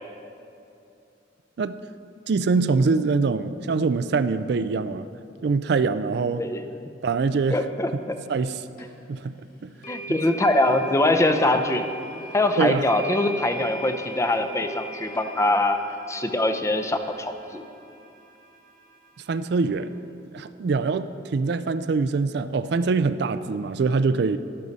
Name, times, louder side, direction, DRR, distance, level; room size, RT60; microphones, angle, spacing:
voice 1, 2.3-5.1 5.4-6.4 7.0-7.6 8.3-8.6 9.1-9.3 9.6-9.7 10.1-10.2 12.6-12.8 19.3-19.9 20.3-24.4, right 4 dB, 60° right, 12 dB, 0.4 m, -24 dB
voice 2, 7.5-8.2 9.9-11.9 12.3-15.8 16.1-17.6, left 1 dB, 15° left, 7 dB, 0.5 m, -23 dB
sound 1, 8.8-8.9 9.8-19.9, right 1 dB, 50° left, 1.7 m, -41 dB
12.0 x 11.5 x 4.0 m, 2.7 s
head